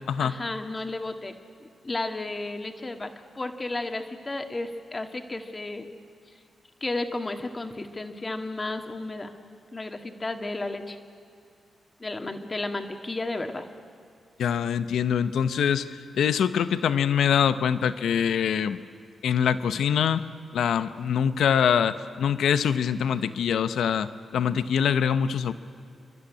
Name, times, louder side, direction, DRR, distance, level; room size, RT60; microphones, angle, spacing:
voice 1, 0.2-1.3 1.6-5.9 6.3-6.4 6.8-9.3 9.7-11.0 12.0-13.7, left 2 dB, 30° left, 6 dB, 1.9 m, -33 dB
voice 2, 14.4-18.8 19.2-20.2 20.5-25.5, left 8 dB, 85° left, 13 dB, 0.7 m, -24 dB
29.0 x 11.5 x 9.8 m, 2.3 s
cardioid pair, 60°, 0 cm